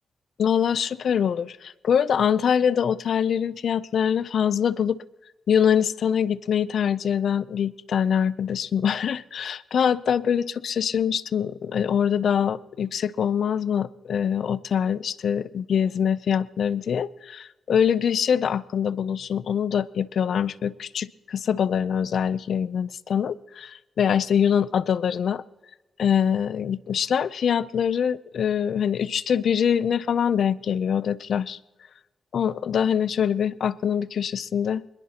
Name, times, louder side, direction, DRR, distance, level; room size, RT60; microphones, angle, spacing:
voice 1, 0.4-5.0 5.5-25.4 26.0-31.6 32.3-34.8, left 8 dB, 65° left, 17 dB, 0.5 m, -24 dB
23.5 x 21.5 x 2.9 m, 1.1 s
wide cardioid pair, 140°, 0 cm